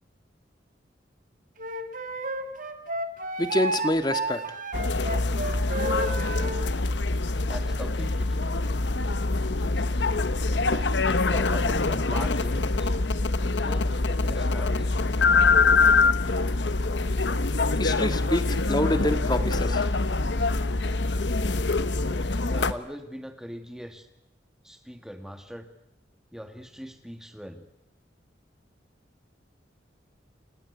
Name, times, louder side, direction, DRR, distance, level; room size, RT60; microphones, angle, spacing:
Wind instrument woodwind instrument, 1.6-6.7, right 2 dB, 50° right, 2.4 m, -31 dB
voice 1, 3.4-4.4 17.8-19.8, left 1 dB, 25° left, 9 dB, 1.7 m, -26 dB
sound 1, 4.7-22.7, left 3 dB, 80° left, 1.1 m, -24 dB
voice 2, 7.4-8.6 10.6-13.0 13.4-14.9 22.4-24.1 24.6-25.7 26.3-27.7, equal, 5° right, 7 dB, 2.0 m, -41 dB
30.0 x 18.5 x 8.3 m, 0.87 s
head